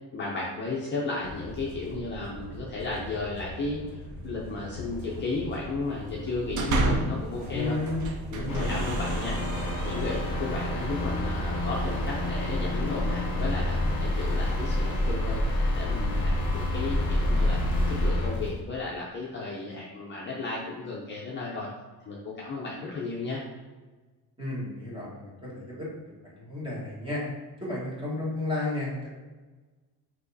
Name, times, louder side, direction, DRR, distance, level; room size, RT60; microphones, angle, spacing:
voice 1, 0.1-3.8 4.2-7.8 8.3-9.4 9.8-15.4 15.7-17.6 17.9-21.7 22.1-23.4, left 3 dB, 30° left, -4 dB, 0.5 m, -34 dB
sound 1, 1.2-10.3, equal, 80° right, 1.1 m, -41 dB
sound 2, 6.2-7.3 7.8-10.6, right 2 dB, 50° right, 0.5 m, -31 dB
voice 2, 7.5-8.0 8.3-8.8 24.4-25.9 26.2-27.2 27.6-29.1, left 2 dB, 15° right, -7 dB, 1.3 m, -32 dB
sound 3, 8.5-18.6, left 1 dB, 50° left, 1.2 m, -27 dB
6.0 x 2.9 x 2.7 m, 1.3 s
cardioid pair, 180°, 39 cm